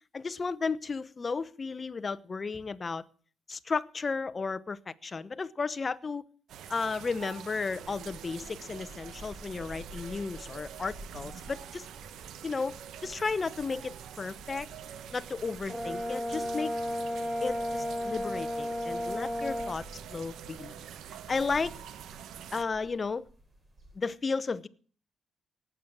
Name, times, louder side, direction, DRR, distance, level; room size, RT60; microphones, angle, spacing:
voice 1, 0.1-3.0 3.5-6.2 6.7-11.9 12.4-14.7 15.1-16.7 17.4-19.9 20.1-20.9 21.3-21.7 22.5-23.3 23.9-24.7, left 4 dB, 35° left, 14 dB, 0.9 m, -34 dB
sound 1, 6.5-22.6, right 9 dB, 75° right, 0.9 m, -46 dB
sound 2, 7.8-24.0, right 1 dB, 35° right, 3.6 m, -53 dB
Brass instrument, 15.7-19.8, left 1 dB, ahead, 0.8 m, -33 dB
18.5 x 8.2 x 7.5 m, 0.44 s
cardioid pair, 90°, 0 cm